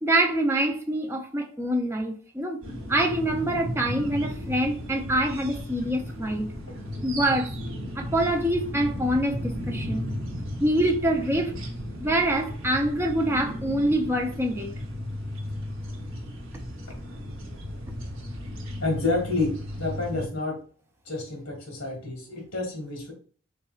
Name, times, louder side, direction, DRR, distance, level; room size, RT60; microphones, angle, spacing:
voice 1, 0.0-2.6 2.9-6.5 7.0-7.5 7.9-10.1 10.6-11.5 12.0-14.7, right 1 dB, 10° right, 0.4 m, -25 dB
sound 1, 2.6-20.3, equal, 65° right, 0.9 m, -35 dB
voice 2, 18.8-20.6 21.0-23.1, left 2 dB, 60° left, 1.6 m, -29 dB
4.3 x 3.6 x 2.4 m
head